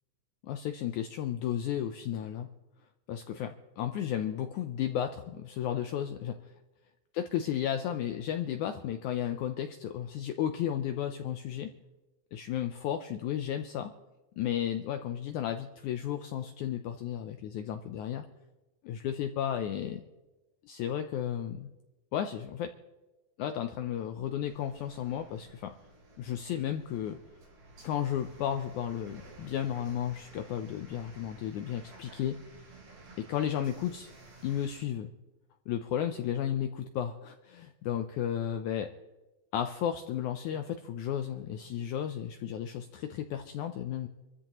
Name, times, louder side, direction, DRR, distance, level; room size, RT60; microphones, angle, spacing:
voice 1, 0.4-2.5 3.1-6.5 7.1-11.7 12.3-13.9 14.4-18.2 18.8-20.0 20.6-21.7 22.1-22.7 23.4-25.7 26.2-27.2 27.8-32.4 33.2-34.1 34.4-35.1 35.7-38.9 39.5-44.1, left 10 dB, 80° left, 7 dB, 1.7 m, -33 dB
sound 1, 24.4-34.8, right 3 dB, 70° right, 5.6 m, -53 dB
26.0 x 13.5 x 3.0 m, 1.1 s
omnidirectional pair, 4.2 m